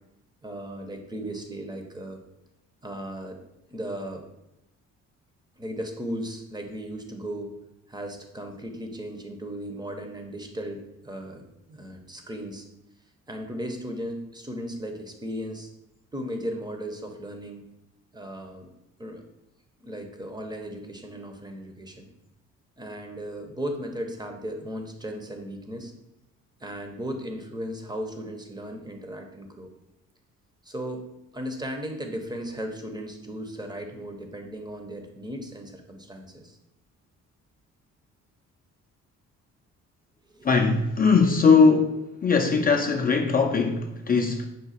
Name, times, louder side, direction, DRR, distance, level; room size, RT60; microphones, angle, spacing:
voice 1, 0.4-2.2 2.8-3.4 3.7-4.3 5.6-7.5 7.9-12.7 13.3-15.7 16.1-17.6 18.1-18.7 19.0-19.2 19.8-22.1 22.8-25.9 26.6-29.7 30.6-31.0 31.3-36.6 40.3-40.5, equal, 15° right, 4 dB, 0.6 m, -36 dB
voice 2, 40.4-41.9 42.2-44.4, left 5 dB, 30° left, 3 dB, 0.4 m, -20 dB
5.1 x 2.2 x 4.0 m, 0.89 s
cardioid pair, 90°, 30 cm